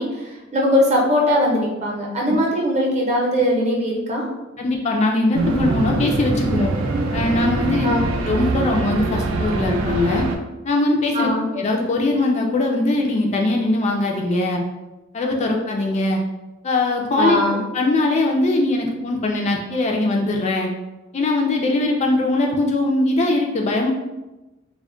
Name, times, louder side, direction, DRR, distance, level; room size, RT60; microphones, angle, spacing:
voice 1, 0.0-4.2 7.8-8.0 11.1-11.4 17.2-17.6, equal, 35° right, -2 dB, 0.6 m, -20 dB
voice 2, 4.6-6.7 7.1-7.9 8.2-10.3 10.6-14.6 15.1-16.2 16.6-17.5 17.7-20.7 21.1-23.9, left 2 dB, 35° left, 1 dB, 0.3 m, -21 dB
sound 1, 5.3-10.4, right 2 dB, 85° right, 0.4 m, -23 dB
2.2 x 2.1 x 3.6 m, 1.1 s
head